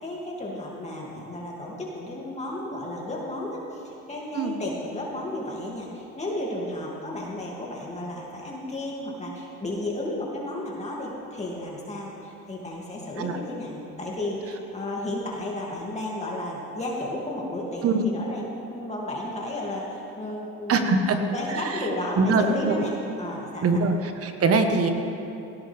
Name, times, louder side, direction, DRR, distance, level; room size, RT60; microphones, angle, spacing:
voice 1, 0.0-20.9 21.2-23.8, left 1 dB, 25° left, -3 dB, 2.7 m, -33 dB
voice 2, 20.7-21.2 22.2-22.8 23.6-23.9 24.2-24.9, right 4 dB, 55° right, 6 dB, 1.5 m, -22 dB
18.0 x 17.5 x 3.6 m, 2.9 s
cardioid pair, 95°, 29 cm